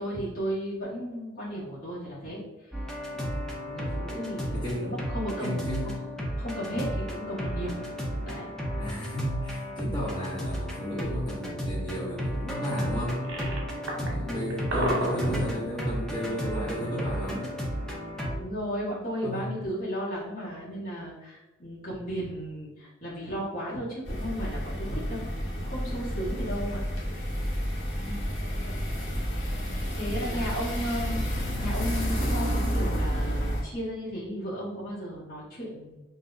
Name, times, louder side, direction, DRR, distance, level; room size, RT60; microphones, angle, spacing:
voice 1, 0.0-2.8 3.1-5.9 6.4-7.8 8.2-8.5 15.2-15.5 18.3-25.2 25.6-26.8 29.9-36.0, equal, 45° left, -9 dB, 1.4 m, -35 dB
sound 1, 2.7-18.4, equal, 5° left, 0.6 m, -33 dB
voice 2, 4.5-5.0 5.4-5.9 8.8-13.3 13.9-17.8 19.2-19.5 28.0-28.2 30.0-30.5, equal, 25° left, -8 dB, 1.0 m, -33 dB
sound 2, 9.9-10.0 13.1-14.1 14.5-15.5, right 1 dB, 60° right, 1.0 m, -30 dB
sound 3, 24.0-33.6, equal, 60° left, 1.1 m, -30 dB
5.9 x 2.7 x 2.6 m, 1.1 s
head